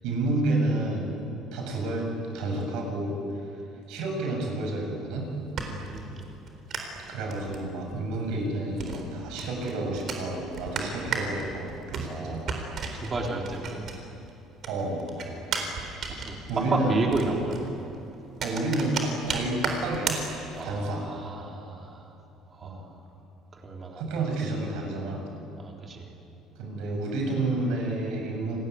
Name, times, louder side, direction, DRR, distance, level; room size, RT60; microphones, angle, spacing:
voice 1, 0.0-1.1 1.5-2.1 2.3-3.2 3.9-5.3 7.1-12.5 14.7-15.1 16.5-17.1 18.4-20.2 20.6-21.1 22.6-22.9 24.0-25.2 26.5-28.6, right 2 dB, 70° right, 1 dB, 7.6 m, -30 dB
sound 1, 5.1-14.3 14.6-20.8, right 5 dB, 40° right, 4.0 m, -35 dB
voice 2, 5.6-6.2 12.0-13.8 15.3-15.7 16.1-17.9 20.6-22.0 22.5-22.8 23.6-24.0 25.6-26.1, right 2 dB, 20° right, 0 dB, 3.7 m, -32 dB
28.0 x 21.0 x 9.6 m, 2.8 s
cardioid pair, 165°, 0 cm